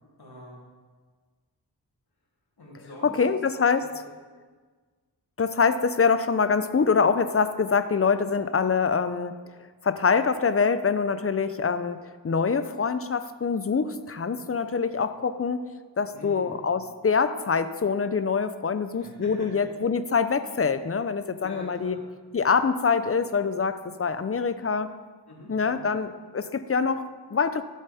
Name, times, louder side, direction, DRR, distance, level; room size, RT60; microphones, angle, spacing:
voice 1, 0.0-0.6 2.6-3.4 3.8-4.1 11.4-11.5 14.3-14.4 16.1-16.6 18.9-19.6 21.4-22.0 25.3-25.9, left 1 dB, 65° left, -4 dB, 3.2 m, -45 dB
voice 2, 3.0-3.9 5.4-9.3 9.8-12.0 12.2-15.7 16.0-22.0 22.3-24.9 25.5-27.6, left 5 dB, 35° left, 11 dB, 0.6 m, -25 dB
14.5 x 7.4 x 4.3 m, 1.5 s
wide cardioid pair, 65°, 41 cm